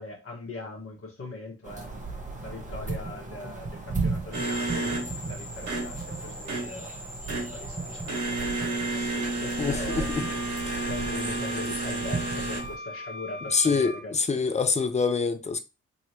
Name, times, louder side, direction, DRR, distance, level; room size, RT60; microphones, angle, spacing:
voice 1, 0.0-1.9 2.4-6.9 7.3-10.1 10.9-14.4, left 2 dB, 40° left, 1.5 m, -41 dB
sound 1, 1.6-12.8, right 3 dB, 20° right, 1.1 m, -36 dB
sound 2, 4.3-12.6, right 2 dB, 55° right, 1.3 m, -32 dB
voice 2, 9.6-10.3 13.5-15.6, left 4 dB, 20° left, 0.5 m, -25 dB
sound 3, 9.9-14.0, left 1 dB, 65° left, 0.7 m, -41 dB
3.0 x 2.8 x 2.9 m
hypercardioid pair, 40°, 34 cm